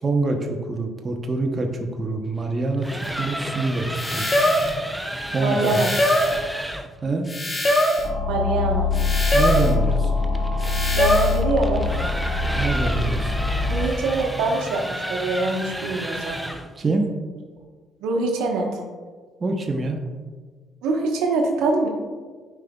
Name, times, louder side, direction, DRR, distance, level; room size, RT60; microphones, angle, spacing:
voice 1, 0.0-2.9 3.2-3.9 4.1-4.3 5.3-5.8 7.0-7.3 9.3-10.1 12.6-13.3 16.8-17.0 19.4-20.0, right 3 dB, 35° right, 3 dB, 0.8 m, -25 dB
sound 1, 2.6-6.9 9.5-16.7, equal, ahead, 0.6 m, -32 dB
sound 2, 3.0-3.1 3.9-4.8 5.6-6.4 7.3-8.1 8.9-9.8 10.6-11.4, equal, 25° left, 1.0 m, -22 dB
voice 2, 5.4-5.9 8.3-8.9 10.9-11.9 13.7-16.4 18.0-18.8 20.8-21.9, right 3 dB, 85° right, 0 dB, 1.1 m, -24 dB
sound 3, 8.0-13.9, left 3 dB, 60° left, 0.6 m, -23 dB
9.0 x 5.2 x 2.3 m, 1.5 s
cardioid pair, 80°, 0 cm